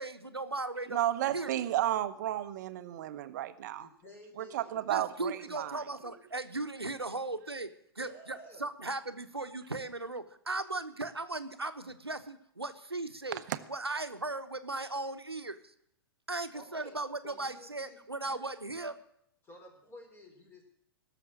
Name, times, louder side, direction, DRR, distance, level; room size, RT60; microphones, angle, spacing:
voice 1, 0.0-1.0 1.3-1.6 4.9-7.7 8.0-13.4 13.7-15.7 16.3-18.9, right 2 dB, 85° right, 1.1 m, -37 dB
voice 2, 0.9-3.9 4.4-5.8 13.5-13.6, right 13 dB, 45° right, 0.9 m, -33 dB
voice 3, 3.8-5.2 5.6-5.7 5.9-6.2 8.0-8.7 16.5-17.0 17.2-18.4 18.8-18.9 19.4-20.7, left 1 dB, 15° left, 4.2 m, -53 dB
17.5 x 7.0 x 8.8 m
figure-of-eight pair, 110°, 13 cm